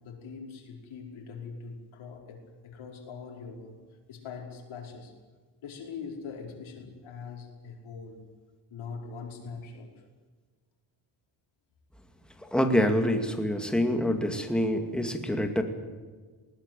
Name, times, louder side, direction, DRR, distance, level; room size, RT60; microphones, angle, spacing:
voice 1, 0.0-3.8 4.1-5.1 5.6-8.2 8.7-9.9, left 5 dB, 80° left, 1 dB, 5.4 m, -42 dB
voice 2, 12.5-15.6, equal, ahead, 5 dB, 2.3 m, -26 dB
20.0 x 19.5 x 9.1 m, 1.4 s
cardioid pair, 145°, 47 cm